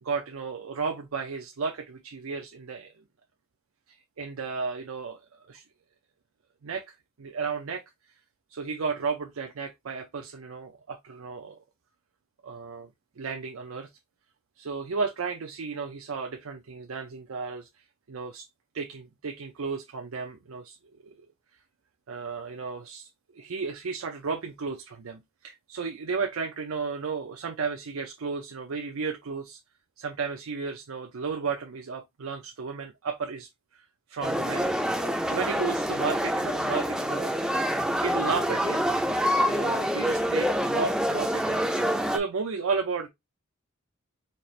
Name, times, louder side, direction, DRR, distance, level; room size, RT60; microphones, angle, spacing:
voice 1, 0.0-3.0 3.9-5.2 5.5-5.6 6.6-7.8 8.5-11.6 12.4-12.9 13.2-13.9 14.6-17.7 18.1-18.5 18.7-20.8 21.0-21.3 22.1-29.6 30.0-34.7 35.3-37.3 38.0-39.0 39.5-41.6 42.1-43.1, right 5 dB, 80° right, 0.5 m, -33 dB
sound 1, 34.2-42.2, equal, 5° right, 0.4 m, -26 dB
4.2 x 2.5 x 3.1 m
head